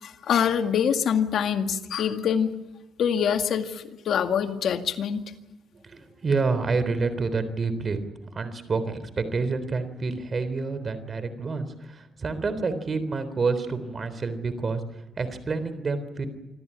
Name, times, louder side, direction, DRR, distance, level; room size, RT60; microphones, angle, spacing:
voice 1, 0.0-2.5 3.0-5.2, left 8 dB, 70° left, 6 dB, 2.0 m, -25 dB
voice 2, 5.8-8.0 8.3-14.8 15.2-16.3, right 4 dB, 40° right, 11 dB, 3.7 m, -28 dB
26.0 x 13.5 x 9.8 m, 1.1 s
cardioid pair, 90°, 0 cm